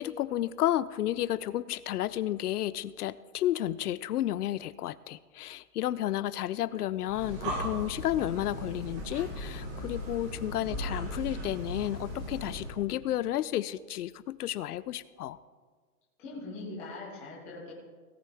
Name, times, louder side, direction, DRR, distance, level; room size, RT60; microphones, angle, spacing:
voice 1, 0.0-15.4, left 13 dB, 80° left, 18 dB, 0.6 m, -32 dB
Breathing, 7.0-12.8, equal, 20° right, 1.2 m, -37 dB
voice 2, 16.2-17.7, left 2 dB, 5° left, -6 dB, 0.5 m, -41 dB
17.5 x 8.7 x 3.5 m, 1.5 s
hypercardioid pair, 175°, 45 cm